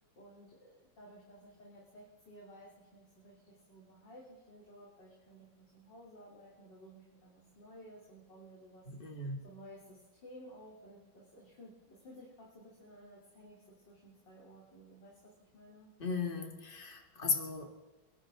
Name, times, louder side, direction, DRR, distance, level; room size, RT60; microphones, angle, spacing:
voice 1, 0.2-8.8 9.4-15.9, equal, 60° left, -4 dB, 3.9 m, -55 dB
voice 2, 8.9-9.4 16.0-17.7, left 4 dB, 25° left, 3 dB, 2.1 m, -36 dB
27.0 x 12.0 x 3.8 m, 1.2 s
omnidirectional pair, 2.2 m